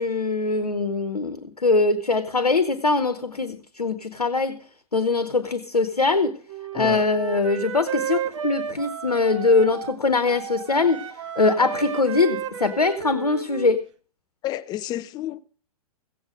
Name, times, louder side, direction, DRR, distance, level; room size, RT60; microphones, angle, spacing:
voice 1, 0.0-4.6 4.9-6.4 6.7-11.0 11.4-13.8, left 3 dB, 80° left, 1.1 m, -22 dB
Wind instrument woodwind instrument, 6.5-10.0 10.2-13.8, right 7 dB, 50° right, 1.1 m, -33 dB
voice 2, 6.7-7.1 14.4-15.4, left 13 dB, 20° left, 0.5 m, -30 dB
16.0 x 8.2 x 5.0 m
figure-of-eight pair, 105°, 19 cm